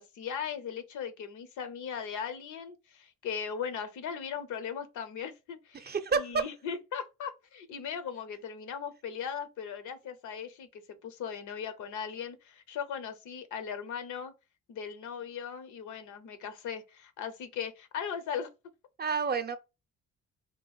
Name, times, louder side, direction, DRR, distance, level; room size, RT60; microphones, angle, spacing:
voice 1, 0.0-14.3 14.7-18.5, left 7 dB, 80° left, 0.7 m, -38 dB
voice 2, 5.7-6.4 19.0-19.6, right 5 dB, 35° right, 0.6 m, -29 dB
3.0 x 2.4 x 3.9 m
cardioid pair, 90°, 30 cm